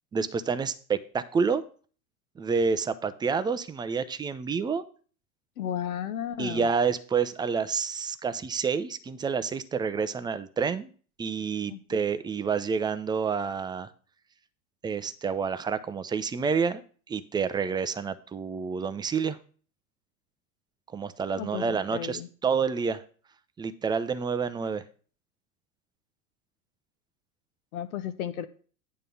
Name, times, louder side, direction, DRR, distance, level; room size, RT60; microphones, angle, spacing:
voice 1, 0.1-1.6 2.4-4.8 6.4-10.9 11.2-13.9 14.8-16.8 17.1-19.4 20.9-23.0 23.6-24.8, right 5 dB, 10° right, 12 dB, 0.4 m, -28 dB
voice 2, 5.6-6.7 11.7-11.8 21.4-22.3 27.7-28.5, left 10 dB, 70° left, 10 dB, 0.9 m, -34 dB
9.1 x 3.7 x 6.9 m, 0.41 s
hypercardioid pair, 90°, 45 cm